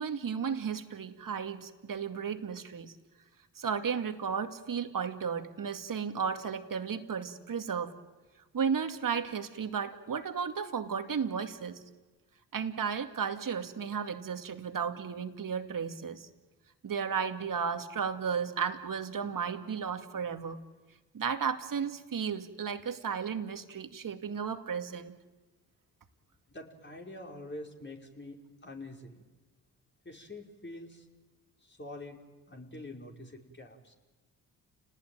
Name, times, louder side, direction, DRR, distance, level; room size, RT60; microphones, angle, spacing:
voice 1, 0.0-2.9 3.6-8.0 8.5-11.8 12.5-16.3 16.8-20.6 21.1-25.2, right 6 dB, 50° right, 7 dB, 2.4 m, -34 dB
voice 2, 26.5-29.2 30.0-31.1 31.6-32.2 32.5-33.9, left 1 dB, 25° left, 1 dB, 5.5 m, -46 dB
30.0 x 19.0 x 9.4 m, 1.3 s
hypercardioid pair, 45°, 41 cm